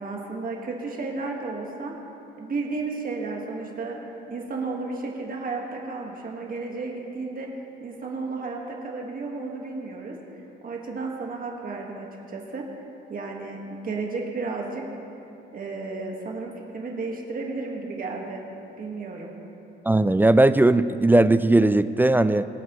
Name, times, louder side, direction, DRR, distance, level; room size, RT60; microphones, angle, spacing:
voice 1, 0.0-1.9 2.4-4.0 4.3-7.5 7.8-12.7 13.1-14.8 15.5-18.4 18.8-19.3, right 3 dB, 45° right, 0 dB, 1.8 m, -33 dB
voice 2, 19.9-22.5, right 2 dB, 10° right, 12 dB, 0.3 m, -18 dB
23.0 x 7.9 x 3.2 m, 2.9 s
cardioid pair, 90°, 20 cm